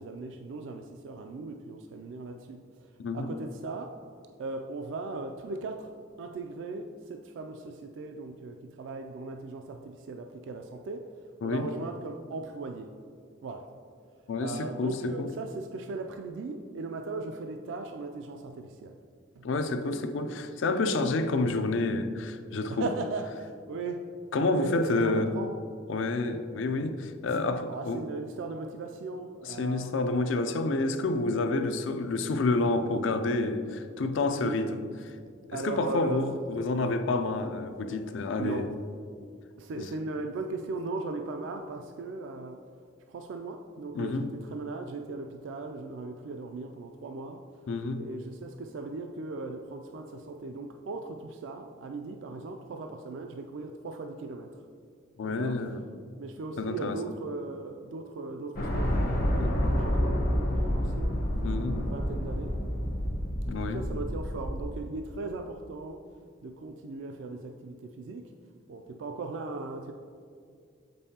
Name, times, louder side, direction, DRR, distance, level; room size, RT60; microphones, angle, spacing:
voice 1, 0.0-3.9 4.4-5.9 6.2-12.9 13.4-13.7 14.4-18.9 19.3-19.5 22.7-24.0 24.5-25.6 27.3-27.4 27.7-30.0 34.3-34.7 35.5-36.3 38.4-38.7 39.6-42.7 43.1-47.5 48.0-54.6 55.2-55.6 56.2-61.1 61.8-62.6 63.5-66.0 66.4-68.3 68.7-69.9, right 3 dB, 70° right, 4 dB, 0.3 m, -38 dB
voice 2, 14.3-15.3 19.4-22.9 24.3-25.3 25.9-28.0 29.4-34.8 35.5-38.8 39.8-39.9 44.0-44.3 47.7-48.0 55.2-55.8 56.6-57.0 59.4-59.5 61.4-61.8 63.5-63.8, left 3 dB, 70° left, 9 dB, 0.4 m, -29 dB
sound 1, 58.6-64.8, equal, 50° left, 0.8 m, -29 dB
7.0 x 5.3 x 2.8 m, 2.2 s
head